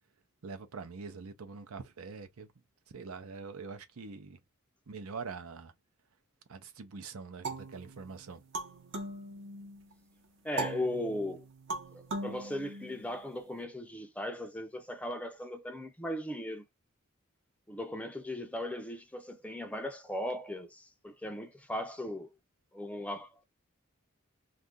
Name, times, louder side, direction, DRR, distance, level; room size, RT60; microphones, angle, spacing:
voice 1, 0.4-2.5 2.9-4.4 4.9-5.7 6.5-8.4, right 4 dB, 85° right, 0.6 m, -44 dB
sound 1, 7.4-9.9 10.6-13.4, right 2 dB, 55° right, 0.8 m, -40 dB
voice 2, 10.4-11.4 11.9-16.6 17.7-22.3 22.7-23.4, left 1 dB, 5° left, 0.4 m, -38 dB
2.7 x 2.5 x 3.6 m
head